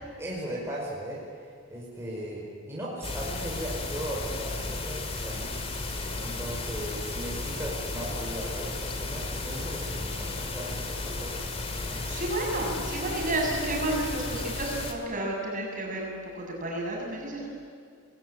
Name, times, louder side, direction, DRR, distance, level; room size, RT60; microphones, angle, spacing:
voice 1, 0.2-1.2 1.7-5.5 6.2-11.4 11.9-12.0, right 1 dB, 10° right, -5 dB, 4.9 m, -37 dB
sound 1, 3.0-14.9, left 2 dB, 25° left, 2.4 m, -34 dB
voice 2, 12.1-17.5, right 1 dB, 35° right, -1 dB, 6.8 m, -31 dB
27.5 x 20.5 x 9.9 m, 2.2 s
head